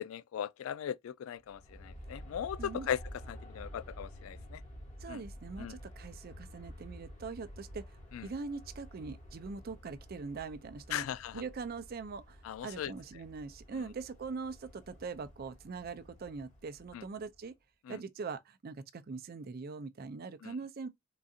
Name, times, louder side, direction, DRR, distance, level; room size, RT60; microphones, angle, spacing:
voice 1, 0.0-3.0 3.3-4.6 5.1-5.2 5.6-5.8 8.1-8.3 10.9-11.4 12.4-12.9 13.7-13.9 16.9-17.0 17.8-18.0 20.4-20.5, left 9 dB, 85° left, 0.3 m, -38 dB
Aircraft, 1.4-17.4, equal, 40° left, 1.3 m, -51 dB
voice 2, 2.6-2.9 5.0-7.8 8.2-11.1 11.3-17.5 17.9-20.9, right 4 dB, 50° right, 0.4 m, -42 dB
3.8 x 2.4 x 2.6 m
head